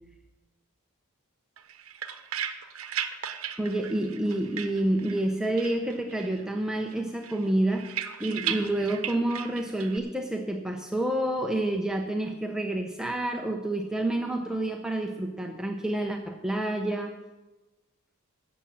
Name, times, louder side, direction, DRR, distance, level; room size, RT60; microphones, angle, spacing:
sound 1, 1.6-5.3 5.6-6.4 6.7-10.0, right 9 dB, 70° right, 0.9 m, -36 dB
voice 1, 3.6-7.9 8.2-17.1, right 1 dB, 5° right, 2 dB, 0.7 m, -28 dB
11.5 x 7.4 x 8.4 m, 1.1 s
head